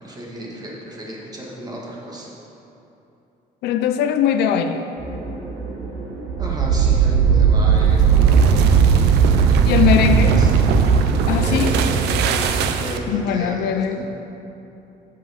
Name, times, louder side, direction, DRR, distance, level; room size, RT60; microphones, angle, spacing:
voice 1, 0.0-2.3 6.4-10.5 11.0-14.0, right 1 dB, 25° right, -4 dB, 1.9 m, -33 dB
voice 2, 3.6-4.9 9.7-10.4 11.3-11.8 13.1-14.0, left 8 dB, 75° left, 8 dB, 0.5 m, -20 dB
sound 1, 5.0-12.1, right 3 dB, 55° right, 1.8 m, -32 dB
sound 2, 6.3-13.2, right 6 dB, 80° right, 0.6 m, -16 dB
7.4 x 5.6 x 7.2 m, 2.9 s
cardioid pair, 110°, 17 cm